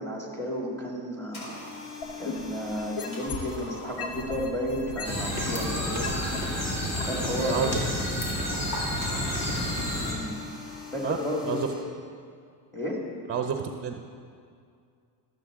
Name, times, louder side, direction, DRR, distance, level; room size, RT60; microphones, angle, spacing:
voice 1, 0.0-1.4 2.2-6.1 6.8-7.8 10.0-10.4 10.9-11.6 12.7-13.0, equal, 5° left, -1 dB, 2.0 m, -32 dB
sound 1, 1.3-5.3 9.0-11.7, left 3 dB, 90° left, 2.7 m, -43 dB
sound 2, 2.0-3.6 4.0-6.4 7.0-7.1, left 5 dB, 60° left, 1.5 m, -36 dB
sound 3, 5.0-10.1, equal, 35° left, 2.5 m, -29 dB
voice 2, 7.4-7.8 11.0-11.2 11.4-11.7 13.3-14.0, right 7 dB, 30° right, 5 dB, 0.7 m, -29 dB
13.0 x 7.5 x 3.7 m, 2.2 s
supercardioid pair, 85°, 46 cm